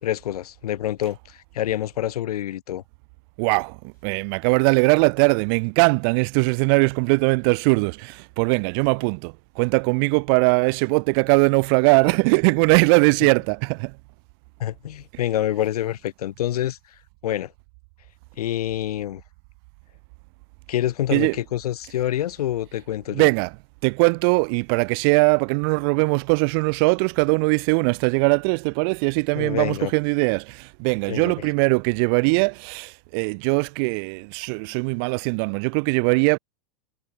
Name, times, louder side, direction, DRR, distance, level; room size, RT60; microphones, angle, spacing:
voice 1, 0.0-2.8 14.6-16.8 17.2-17.5 18.4-19.2 20.7-23.3 29.3-29.9 31.1-31.5, left 12 dB, 85° left, 2.2 m, -27 dB
voice 2, 3.4-13.9 21.1-21.3 23.1-23.5 23.8-36.4, right 34 dB, 40° right, 1.2 m, -20 dB
supercardioid pair, 165°, 19 cm